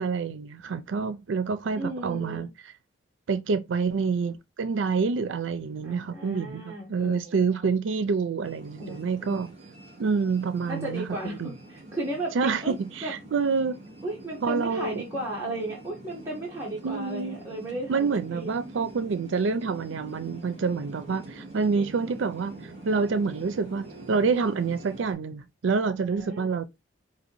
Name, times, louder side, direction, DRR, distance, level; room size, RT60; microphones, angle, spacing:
voice 1, 0.0-2.5 3.3-9.5 10.0-11.1 11.4-11.5 12.3-13.8 14.4-15.0 16.8-17.4 17.9-22.6 22.9-26.7, right 5 dB, 90° right, 0.4 m, -27 dB
voice 2, 1.7-2.5 5.8-7.6 8.8-9.4 10.7-12.7 13.0-13.1 14.0-18.5 21.8-22.1 26.1-26.5, right 1 dB, 15° right, 1.2 m, -35 dB
sound 1, 8.4-25.1, right 2 dB, 35° right, 2.7 m, -45 dB
5.1 x 2.8 x 3.0 m
head